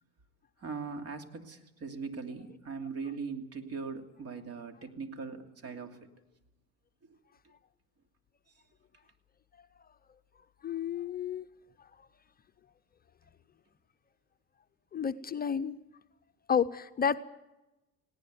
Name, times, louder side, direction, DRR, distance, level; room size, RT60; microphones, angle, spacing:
voice 1, 0.6-6.1 7.0-7.2, right 5 dB, 45° right, 6 dB, 2.8 m, -40 dB
voice 2, 10.6-11.5 11.8-11.9 14.9-15.8 16.5-17.2, left 7 dB, 25° left, 9 dB, 0.7 m, -31 dB
19.5 x 17.5 x 9.4 m, 1.0 s
supercardioid pair, 85°, 34 cm